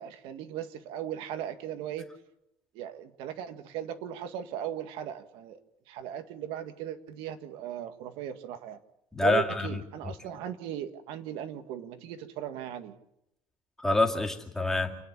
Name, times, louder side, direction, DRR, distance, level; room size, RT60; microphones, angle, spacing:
voice 1, 0.0-2.1 2.7-5.6 5.9-8.8 9.2-12.9, right 10 dB, 80° right, 9 dB, 1.8 m, -38 dB
voice 2, 9.1-10.1 13.8-15.0, left 2 dB, 5° left, 0 dB, 2.3 m, -27 dB
29.0 x 10.0 x 9.9 m, 0.82 s
cardioid pair, 165°, 9 cm